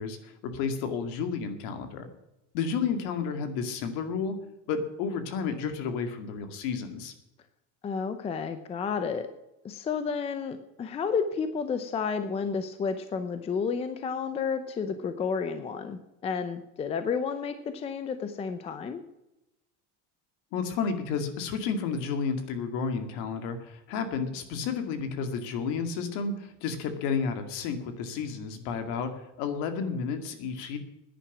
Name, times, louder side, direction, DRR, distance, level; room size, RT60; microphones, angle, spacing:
voice 1, 0.0-2.1 2.5-4.4 4.7-7.1 20.5-30.8, left 5 dB, 60° left, 8 dB, 2.3 m, -31 dB
voice 2, 7.8-9.3 9.6-19.0, left 5 dB, 15° left, 10 dB, 0.6 m, -31 dB
11.0 x 10.0 x 7.3 m, 0.90 s
cardioid pair, 175°, 35 cm